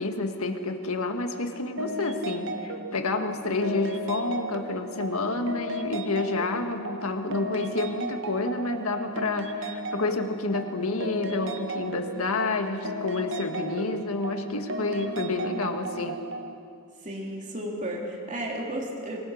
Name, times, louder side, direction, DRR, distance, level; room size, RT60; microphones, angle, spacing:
voice 1, 0.0-16.2, left 3 dB, 90° left, 6 dB, 1.7 m, -29 dB
sound 1, 1.8-16.5, right 2 dB, 60° right, 1.3 m, -35 dB
voice 2, 15.2-15.6 17.0-19.3, right 1 dB, 35° right, -1 dB, 2.9 m, -34 dB
25.5 x 21.0 x 6.4 m, 2.4 s
head